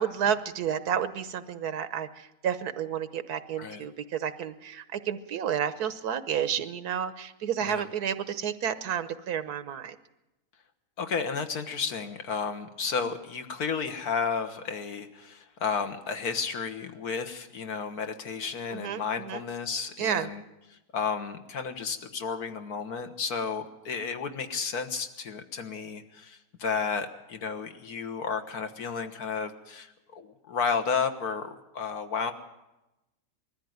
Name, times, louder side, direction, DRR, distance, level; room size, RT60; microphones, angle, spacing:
voice 1, 0.0-9.9 18.7-19.4 20.0-20.3, right 8 dB, 90° right, 13 dB, 1.5 m, -31 dB
voice 2, 11.0-20.4 20.7-32.3, left 5 dB, 80° left, 8 dB, 1.8 m, -32 dB
21.0 x 14.0 x 9.3 m, 0.98 s
omnidirectional pair, 1.6 m